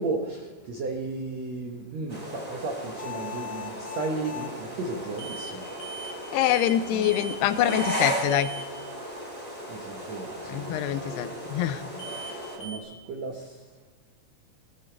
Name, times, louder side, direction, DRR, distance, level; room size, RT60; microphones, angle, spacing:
voice 1, 0.0-5.7 6.9-7.1 9.7-11.4 11.9-12.1 12.6-13.9, right 3 dB, 90° right, 3 dB, 1.5 m, -35 dB
sound 1, 2.1-12.6, equal, 10° right, 2.4 m, -36 dB
sound 2, 3.0-4.6 5.2-5.5 5.8-6.2 6.4-6.8 7.0-7.4 7.7-8.0 8.3-8.7 12.0-12.3 12.6-12.8, left 1 dB, 35° left, 3.4 m, -39 dB
voice 2, 6.3-8.5 10.5-11.8, left 11 dB, 80° left, 12 dB, 2.6 m, -25 dB
19.5 x 14.0 x 4.5 m, 1.3 s
omnidirectional pair, 4.9 m